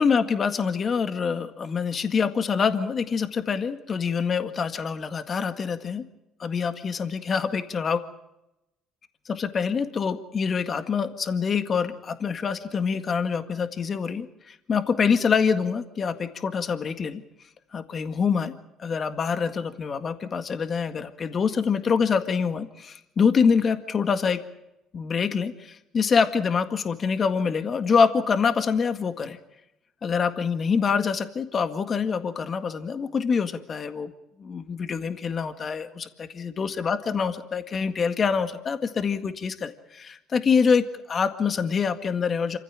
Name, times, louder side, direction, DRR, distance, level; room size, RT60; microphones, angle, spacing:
voice 1, 0.0-6.0 6.4-8.0 9.3-17.2 17.7-18.5 18.8-24.4 24.9-29.4 30.0-34.1 34.4-42.6, left 6 dB, 45° left, 9 dB, 1.8 m, -25 dB
27.0 x 15.5 x 8.9 m, 0.91 s
supercardioid pair, 80°, 0 cm